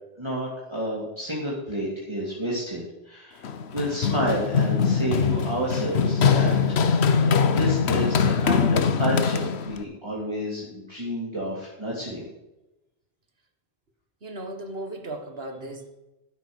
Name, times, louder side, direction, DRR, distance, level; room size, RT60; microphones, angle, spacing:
voice 1, 0.2-12.3, equal, 25° right, -5 dB, 2.7 m, -30 dB
Run, 3.4-9.8, left 6 dB, 70° left, 1.1 m, -22 dB
voice 2, 14.2-15.9, right 1 dB, 60° right, 5 dB, 1.8 m, -36 dB
12.0 x 7.9 x 6.3 m, 0.99 s
omnidirectional pair, 1.1 m